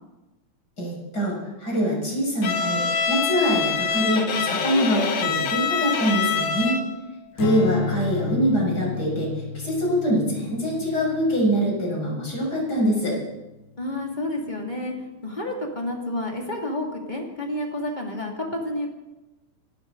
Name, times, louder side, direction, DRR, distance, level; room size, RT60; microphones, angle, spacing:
voice 1, 0.8-6.8 7.3-13.2, equal, 30° left, -3 dB, 7.3 m, -24 dB
Bowed string instrument, 2.4-7.0, left 6 dB, 50° left, 1.4 m, -25 dB
Strum, 7.4-13.8, left 5 dB, 85° left, 0.9 m, -33 dB
voice 2, 13.8-14.9 15.2-18.9, left 1 dB, 15° left, 0 dB, 2.6 m, -30 dB
26.0 x 13.0 x 4.0 m, 1.0 s
omnidirectional pair, 3.4 m